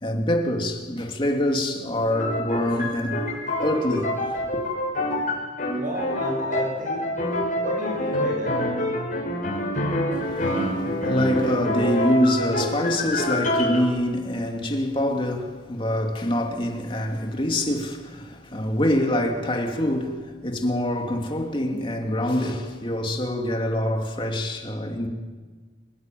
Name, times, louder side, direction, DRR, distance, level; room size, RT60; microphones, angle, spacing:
voice 1, 0.0-3.2 3.6-4.6 10.1-25.1, left 1 dB, 30° left, 3.0 m, -25 dB
sound 1, 2.1-13.8, left 1 dB, 50° left, 7.0 m, -26 dB
voice 2, 5.7-7.1 7.6-8.5, equal, 50° right, 7.1 m, -32 dB
29.5 x 17.0 x 9.4 m
head